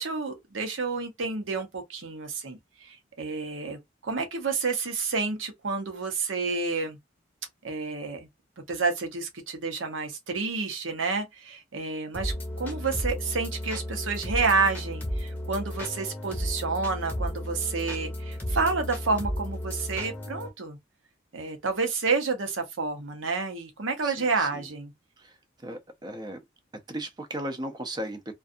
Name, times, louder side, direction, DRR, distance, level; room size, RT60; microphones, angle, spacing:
voice 1, 0.0-7.0 7.6-8.3 8.7-20.8 21.3-24.9, right 4 dB, 85° right, 0.8 m, -29 dB
sound 1, 12.1-20.5, equal, 10° left, 0.9 m, -33 dB
voice 2, 24.0-24.7 25.2-26.4 26.9-28.3, right 1 dB, 20° right, 0.5 m, -36 dB
2.5 x 2.3 x 2.5 m
head